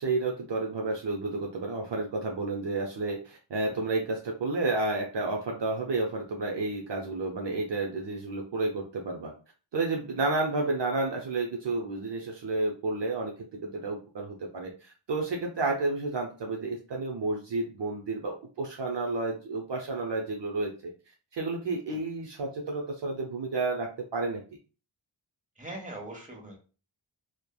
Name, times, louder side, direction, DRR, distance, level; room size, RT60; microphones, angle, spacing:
voice 1, 0.0-9.3 9.7-13.3 13.6-20.9 21.3-24.4, right 3 dB, 60° right, 1 dB, 0.6 m, -31 dB
voice 2, 25.6-26.6, right 1 dB, 15° right, -1 dB, 1.0 m, -41 dB
3.1 x 2.0 x 2.2 m, 0.36 s
wide cardioid pair, 40°, 49 cm